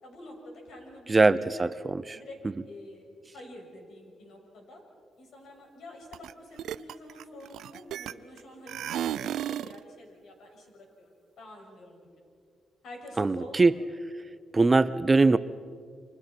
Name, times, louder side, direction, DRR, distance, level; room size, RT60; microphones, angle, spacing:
voice 1, 0.0-1.7 2.1-2.4 2.6-3.1 3.3-4.8 5.2-11.1 11.4-12.0 12.8-13.7, left 1 dB, 70° left, 0 dB, 6.7 m, -47 dB
voice 2, 1.1-2.2 13.2-13.7 14.5-15.4, right 3 dB, 20° right, 15 dB, 0.5 m, -22 dB
sound 1, 6.1-6.3 6.6-8.4 8.7-9.8, right 11 dB, 80° right, 0.5 m, -33 dB
30.0 x 25.5 x 4.5 m, 2.3 s
cardioid pair, 120°, 0 cm